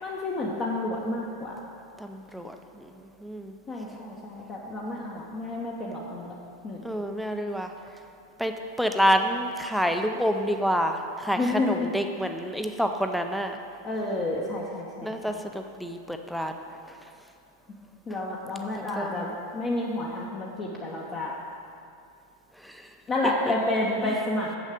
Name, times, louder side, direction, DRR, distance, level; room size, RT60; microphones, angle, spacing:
voice 1, 0.0-1.5 3.7-6.3 6.6-6.8 11.4-11.9 13.8-15.4 18.1-19.3 19.5-21.3 23.1-24.5, left 2 dB, 25° left, -4 dB, 1.0 m, -30 dB
voice 2, 2.0-2.5 3.2-3.5 6.8-7.7 8.4-13.6 15.0-16.5 18.9-19.3 22.6-22.7 23.2-23.5 24.0-24.2, equal, ahead, 5 dB, 0.5 m, -28 dB
7.4 x 6.3 x 6.6 m, 2.5 s
figure-of-eight pair, 90°, 0 cm